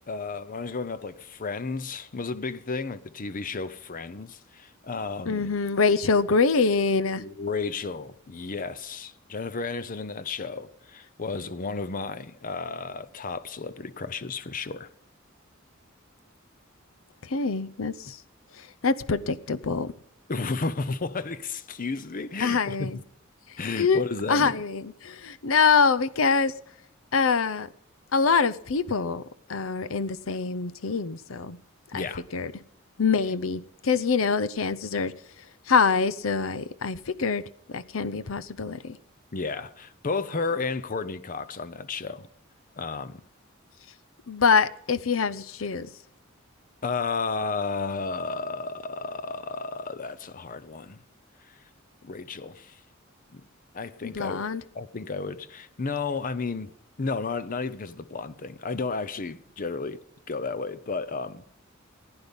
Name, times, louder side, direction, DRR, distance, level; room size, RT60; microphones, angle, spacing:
voice 1, 0.1-5.6 7.2-14.9 20.3-23.0 23.6-24.5 31.9-32.2 39.3-42.3 42.8-43.2 46.8-51.0 51.5-51.6 52.0-52.8 53.3-53.4 53.7-54.4 54.7-56.7 57.0-60.0 60.3-61.5, left 4 dB, 40° left, 0.7 m, -32 dB
voice 2, 5.3-7.2 17.2-18.2 18.5-19.9 22.4-23.0 23.5-24.0 24.3-26.5 27.1-27.7 28.1-29.2 29.5-31.6 31.9-32.1 32.3-32.5 33.0-35.1 35.7-37.4 37.7-39.0 44.3-45.9 54.0-54.6, left 5 dB, 75° left, 0.7 m, -25 dB
16.0 x 9.8 x 5.3 m
head